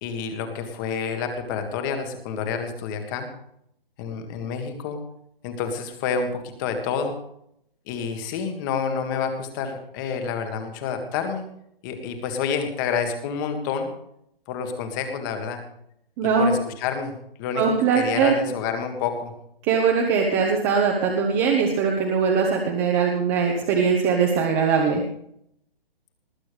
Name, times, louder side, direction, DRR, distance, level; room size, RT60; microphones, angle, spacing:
voice 1, 0.0-3.3 4.0-5.0 5.4-7.1 7.9-11.5 11.8-13.9 14.5-15.6 16.4-17.6 17.9-19.3, left 6 dB, 20° left, 6 dB, 1.7 m, -28 dB
voice 2, 16.2-16.6 17.6-18.3 19.7-25.0, right 6 dB, 15° right, 1 dB, 1.2 m, -21 dB
20.0 x 8.4 x 5.1 m, 0.73 s
hypercardioid pair, 155°, 29 cm